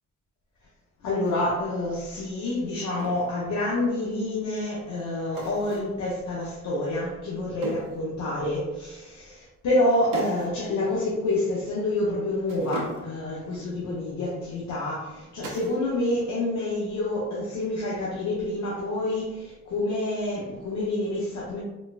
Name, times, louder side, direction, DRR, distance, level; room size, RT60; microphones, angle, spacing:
voice 1, 1.0-21.6, left 1 dB, 70° left, -6 dB, 0.9 m, -28 dB
sound 1, 1.2-1.5 3.0-3.3 5.3-6.0 7.6-8.0 10.1-10.6 10.8-11.0 12.4-13.3 15.4-15.9 16.1-16.7 19.0-19.5, right 1 dB, 85° right, 0.9 m, -38 dB
4.1 x 2.3 x 2.4 m, 1.0 s
cardioid pair, 90°, 30 cm